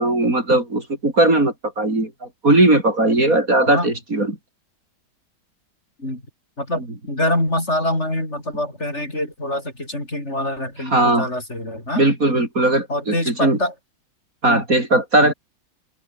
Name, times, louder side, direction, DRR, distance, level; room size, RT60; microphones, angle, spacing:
voice 1, 0.0-4.4 10.9-11.3 11.9-13.6 14.4-15.3, right 2 dB, 45° right, 5.7 m, -18 dB
voice 2, 6.6-12.0 12.9-13.7 14.5-14.6 15.2-15.3, left 1 dB, 35° left, 7.7 m, -25 dB
omnidirectional pair, 2.1 m